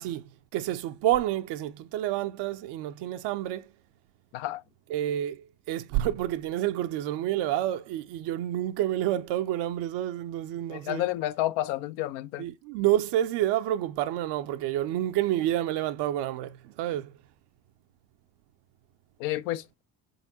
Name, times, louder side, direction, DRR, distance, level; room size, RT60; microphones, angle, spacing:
voice 1, 0.0-3.7 4.9-11.0 12.4-17.1, right 13 dB, 60° right, 0.6 m, -29 dB
voice 2, 4.3-4.6 10.7-12.5 19.2-19.7, left 15 dB, 75° left, 0.6 m, -30 dB
4.0 x 3.9 x 2.6 m
hypercardioid pair, 70°, 47 cm